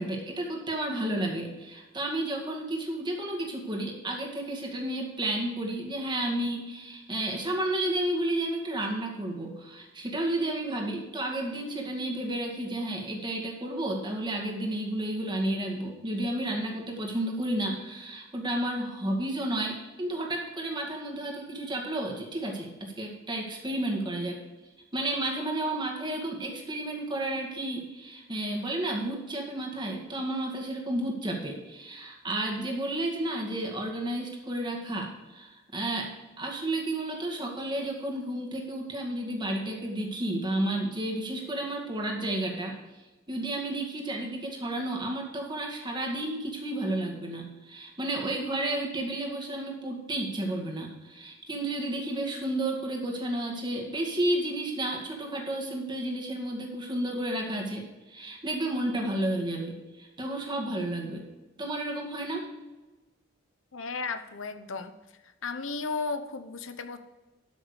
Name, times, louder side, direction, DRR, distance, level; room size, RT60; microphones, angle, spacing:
voice 1, 0.0-24.4 24.9-36.1 36.4-42.8 43.3-61.3 61.6-62.5, right 1 dB, 25° right, 1 dB, 2.1 m, -32 dB
voice 2, 63.7-64.9 65.4-67.0, left 4 dB, 80° left, 10 dB, 0.9 m, -34 dB
12.5 x 6.3 x 5.0 m, 1.1 s
head